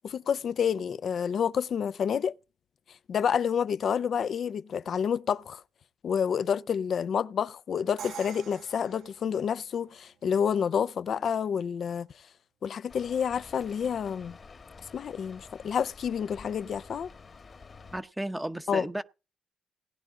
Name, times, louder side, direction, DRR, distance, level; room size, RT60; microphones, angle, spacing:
voice 1, 0.0-2.3 3.1-5.6 6.0-12.1 12.6-14.4 14.9-17.1 18.7-18.9, left 7 dB, 55° left, 0.6 m, -29 dB
Crash cymbal, 8.0-9.9, right 8 dB, 75° right, 0.8 m, -45 dB
Rain, 12.9-18.0, left 4 dB, 40° left, 1.4 m, -50 dB
voice 2, 17.9-19.0, right 1 dB, 10° right, 0.9 m, -34 dB
18.5 x 10.5 x 3.8 m
cardioid pair, 90°, 0 cm